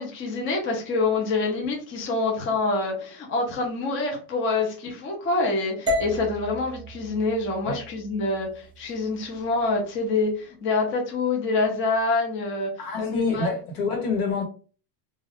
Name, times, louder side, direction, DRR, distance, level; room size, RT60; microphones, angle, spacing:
voice 1, 0.0-12.7 13.0-13.5, left 3 dB, 25° left, 0.6 m, -26 dB
sound 1, 5.9-10.0, left 1 dB, 10° right, 0.7 m, -34 dB
voice 2, 12.8-14.4, left 4 dB, 80° left, 1.3 m, -27 dB
2.5 x 2.4 x 3.4 m
cardioid pair, 160°, 46 cm